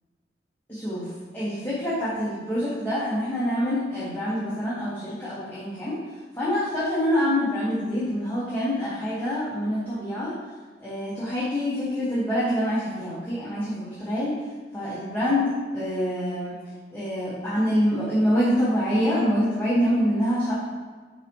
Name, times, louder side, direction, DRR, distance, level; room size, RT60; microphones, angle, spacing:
voice 1, 0.7-6.0 6.4-10.3 10.8-14.4 14.7-16.6 16.9-20.5, equal, 10° left, -11 dB, 1.8 m, -26 dB
9.1 x 4.8 x 3.2 m, 1.4 s
head